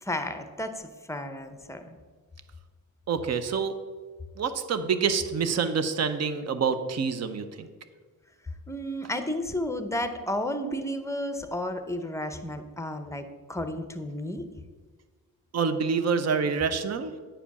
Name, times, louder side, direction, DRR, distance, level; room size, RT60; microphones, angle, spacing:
voice 1, 0.0-1.9 8.7-14.5, left 1 dB, 10° left, 8 dB, 0.7 m, -32 dB
voice 2, 3.1-3.8 4.4-7.7 15.5-17.2, right 5 dB, 45° right, 10 dB, 0.7 m, -27 dB
10.0 x 5.0 x 7.0 m, 1.5 s
wide cardioid pair, 150°, 35 cm